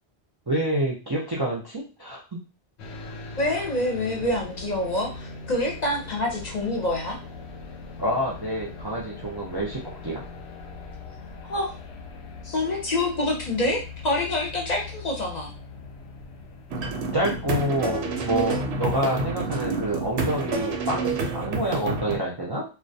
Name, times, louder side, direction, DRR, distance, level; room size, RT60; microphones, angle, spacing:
voice 1, 0.5-2.4 8.0-10.2 17.1-22.6, right 1 dB, 40° right, -5 dB, 0.4 m, -27 dB
sound 1, 2.8-21.1, left 4 dB, 90° left, 0.8 m, -41 dB
voice 2, 3.4-7.2 11.5-11.7 12.4-15.5, left 1 dB, 50° left, 0 dB, 0.6 m, -26 dB
sound 2, 16.7-22.2, right 3 dB, 90° right, 0.8 m, -28 dB
2.3 x 2.1 x 2.6 m, 0.34 s
omnidirectional pair, 1.1 m